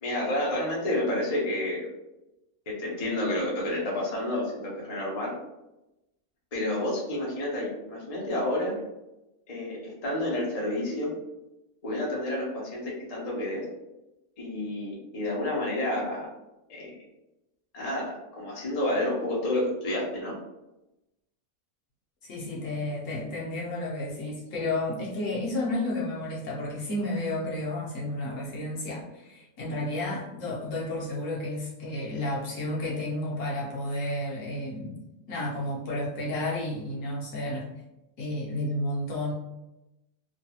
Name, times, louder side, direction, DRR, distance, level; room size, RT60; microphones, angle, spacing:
voice 1, 0.0-1.9 2.7-5.3 6.5-8.7 9.5-11.1 11.8-13.6 14.4-16.3 16.7-16.9 17.7-20.3, left 1 dB, 40° left, -4 dB, 0.6 m, -30 dB
voice 2, 22.2-35.0 35.3-37.7 38.2-39.3, left 1 dB, 60° left, -4 dB, 1.0 m, -32 dB
3.1 x 2.2 x 2.8 m, 0.95 s
omnidirectional pair, 1.6 m